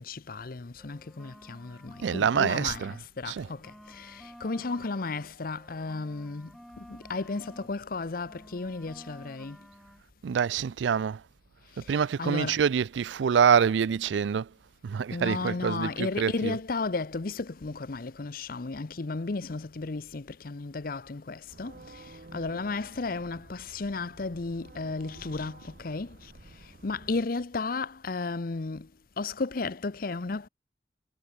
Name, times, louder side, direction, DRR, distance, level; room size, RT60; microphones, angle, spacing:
voice 1, 0.0-9.6 11.9-12.6 15.1-26.2 26.8-28.9 29.2-30.5, left 3 dB, 55° left, 0.7 m, -34 dB
sound 1, 0.8-3.0 3.4-7.7 8.0-10.0, equal, ahead, 4.7 m, -52 dB
voice 2, 2.0-3.5 10.2-11.2 11.8-14.5 14.8-16.6, right 7 dB, 90° right, 0.4 m, -26 dB
sound 2, 21.5-27.3, right 2 dB, 50° right, 1.0 m, -51 dB
head